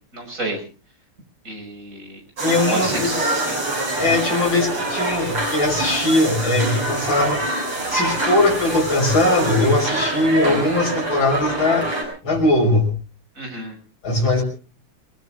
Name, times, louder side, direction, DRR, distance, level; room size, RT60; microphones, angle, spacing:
voice 1, 0.1-0.6 1.4-2.2 2.7-3.6 13.4-13.8, right 2 dB, 35° right, 3 dB, 6.7 m, -30 dB
voice 2, 2.4-3.1 4.0-7.4 7.9-11.9 12.2-12.9 14.0-14.4, left 2 dB, 65° left, 2 dB, 6.7 m, -20 dB
sound 1, 2.4-12.0, right 1 dB, 80° right, 7.5 m, -25 dB
29.5 x 19.0 x 2.5 m, 0.37 s
omnidirectional pair, 2.4 m